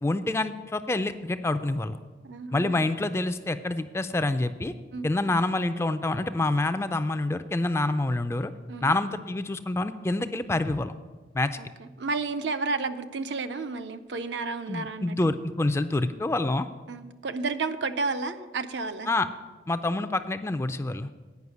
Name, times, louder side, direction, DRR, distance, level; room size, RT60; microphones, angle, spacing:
voice 1, 0.0-2.0 2.5-4.7 5.0-8.5 8.8-10.9 11.3-11.6 14.7-16.7 19.1-19.3 19.7-21.1, left 2 dB, 15° left, 10 dB, 0.3 m, -27 dB
voice 2, 2.2-2.8 4.9-5.1 8.7-8.9 11.6-15.2 16.9-19.1, right 3 dB, 75° right, 9 dB, 0.6 m, -32 dB
9.4 x 5.6 x 8.3 m, 1.3 s
head